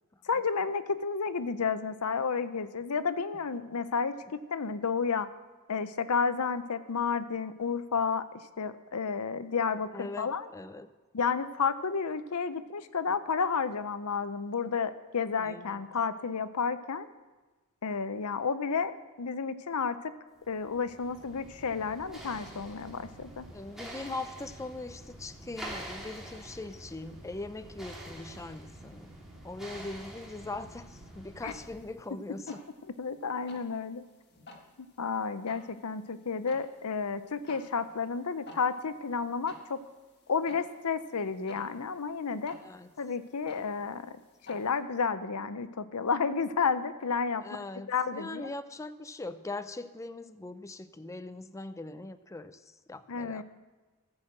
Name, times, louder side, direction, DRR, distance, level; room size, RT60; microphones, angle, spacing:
voice 1, 0.2-5.3 5.7-8.2 8.6-10.5 11.1-17.1 17.8-20.1 20.5-23.5 31.4-31.5 33.0-34.0 34.8-39.8 40.3-42.6 43.0-44.2 44.5-47.4 47.9-48.5 53.1-53.4, left 5 dB, 90° left, 13 dB, 0.7 m, -31 dB
voice 2, 9.9-10.9 15.4-15.8 23.5-29.1 29.4-32.6 42.6-42.9 47.4-53.4, left 2 dB, 15° left, 11 dB, 0.4 m, -41 dB
sound 1, 20.4-31.9, right 1 dB, ahead, 2.9 m, -46 dB
sound 2, 31.4-44.8, left 2 dB, 50° left, 1.6 m, -55 dB
14.5 x 6.3 x 7.6 m, 1.3 s
head